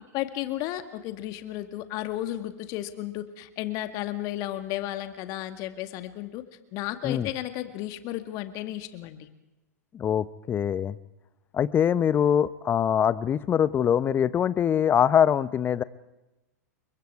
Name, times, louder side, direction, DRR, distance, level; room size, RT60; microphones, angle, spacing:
voice 1, 0.1-6.4 6.7-9.3, left 14 dB, 40° left, 9 dB, 2.0 m, -33 dB
voice 2, 9.9-11.0 11.5-15.8, left 9 dB, 25° left, 17 dB, 0.9 m, -23 dB
30.0 x 23.5 x 4.8 m, 1.0 s
figure-of-eight pair, 100°, 9 cm